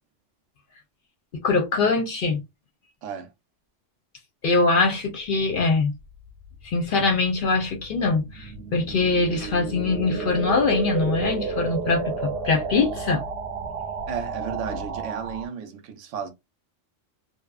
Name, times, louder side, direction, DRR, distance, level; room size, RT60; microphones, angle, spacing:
voice 1, 1.3-2.4 4.4-5.9 6.6-13.2, left 3 dB, 60° left, 0.6 m, -23 dB
voice 2, 3.0-3.3 14.1-16.3, right 7 dB, 85° right, 0.9 m, -33 dB
sound 1, 6.1-15.5, right 4 dB, 65° right, 0.7 m, -32 dB
2.8 x 2.0 x 2.3 m
omnidirectional pair, 1.2 m